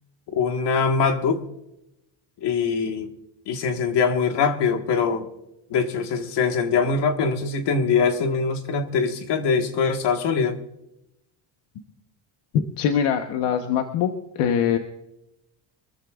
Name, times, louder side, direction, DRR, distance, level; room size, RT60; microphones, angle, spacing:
voice 1, 0.3-1.4 2.4-3.1 3.5-5.3 5.7-10.6, left 5 dB, 55° left, 5 dB, 1.8 m, -23 dB
voice 2, 12.5-14.1 14.4-14.8, left 8 dB, 85° left, 5 dB, 1.3 m, -22 dB
26.0 x 14.0 x 2.5 m, 0.89 s
cardioid pair, 135°, 49 cm